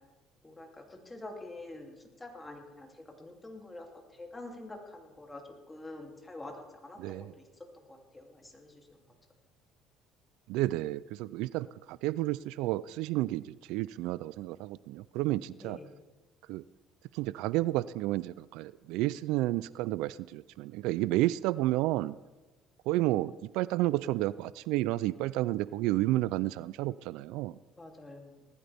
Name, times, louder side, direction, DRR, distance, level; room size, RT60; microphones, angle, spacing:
voice 1, 0.4-7.5 7.7-9.1 15.6-16.1 27.8-28.5, left 2 dB, 15° left, 1 dB, 2.8 m, -47 dB
voice 2, 7.0-7.3 10.5-15.8 16.5-16.6 17.1-22.2 22.9-27.6, right 17 dB, 80° right, 19 dB, 0.3 m, -31 dB
19.5 x 14.0 x 3.5 m, 1.2 s
cardioid pair, 105°, 0 cm